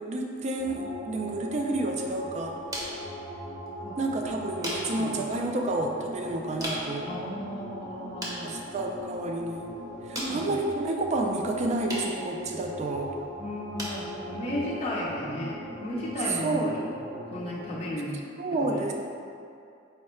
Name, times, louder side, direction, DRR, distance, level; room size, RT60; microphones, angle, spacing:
voice 1, 0.0-2.6 4.0-7.1 8.4-9.7 10.1-13.1 16.3-16.8 18.4-18.9, right 2 dB, 35° right, 2 dB, 0.3 m, -30 dB
sound 1, 0.6-17.9, equal, 85° right, 1.0 m, -40 dB
sound 2, 1.5-16.5, right 1 dB, 20° right, 0.7 m, -42 dB
voice 2, 7.1-8.5 10.2-10.4 13.4-16.8 17.3-18.1 18.5-18.6, left 1 dB, 30° left, -6 dB, 0.5 m, -34 dB
4.6 x 2.1 x 4.3 m, 2.5 s
head